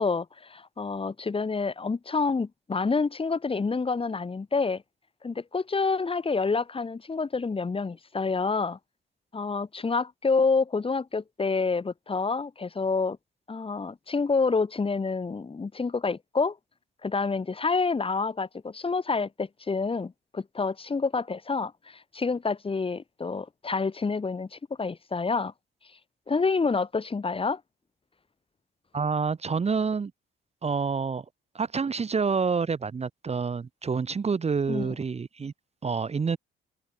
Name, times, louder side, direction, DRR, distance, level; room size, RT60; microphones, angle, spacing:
voice 1, 0.0-4.8 5.2-8.8 9.3-13.2 13.5-16.6 17.0-25.5 26.3-27.6 34.7-35.0, left 4 dB, 25° left, 2.1 m, -28 dB
voice 2, 28.9-30.1 30.6-31.2 31.5-35.5 35.8-36.4, right 5 dB, 30° right, 1.3 m, -28 dB
cardioid pair, 90°, 20 cm